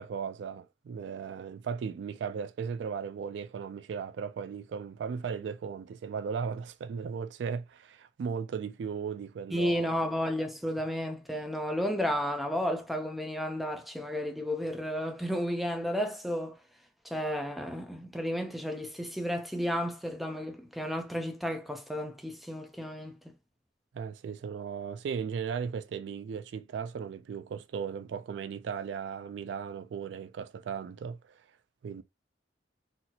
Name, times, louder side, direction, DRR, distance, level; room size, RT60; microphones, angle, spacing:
voice 1, 0.0-10.0 23.9-31.4 31.8-32.0, right 6 dB, 70° right, 0.3 m, -36 dB
voice 2, 9.5-16.6 17.0-23.2, equal, ahead, 0.5 m, -32 dB
4.2 x 2.0 x 2.7 m
head